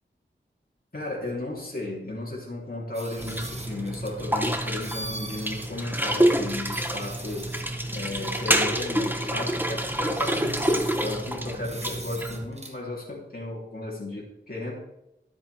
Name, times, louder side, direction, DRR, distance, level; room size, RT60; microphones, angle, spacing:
voice 1, 0.9-7.6 7.9-14.7, left 2 dB, 50° left, -5 dB, 3.4 m, -35 dB
sound 1, 2.9-4.2 4.8-5.7 6.0-6.1 6.5-7.7 8.2-8.5 9.5-9.6 9.9-11.2 11.6-12.8, right 1 dB, 35° right, 1.6 m, -41 dB
sound 2, 3.2-12.4, right 1 dB, 10° right, 1.2 m, -27 dB
12.0 x 8.0 x 3.5 m, 0.86 s
wide cardioid pair, 50°, 20 cm